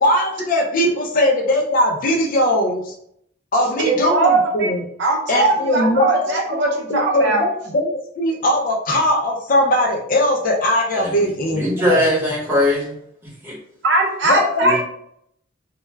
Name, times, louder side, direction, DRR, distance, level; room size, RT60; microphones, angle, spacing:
voice 1, 0.0-2.9 3.5-4.8 5.3-6.2 6.5-6.6 6.9-12.0 14.2-14.9, left 1 dB, 45° left, 1 dB, 0.4 m, -20 dB
voice 2, 3.8-4.7 5.0-7.4 13.8-14.9, right 2 dB, 60° right, 0 dB, 0.6 m, -19 dB
voice 3, 11.5-13.6 14.6-14.8, left 1 dB, 10° right, -6 dB, 0.8 m, -21 dB
2.2 x 2.0 x 3.2 m, 0.70 s
head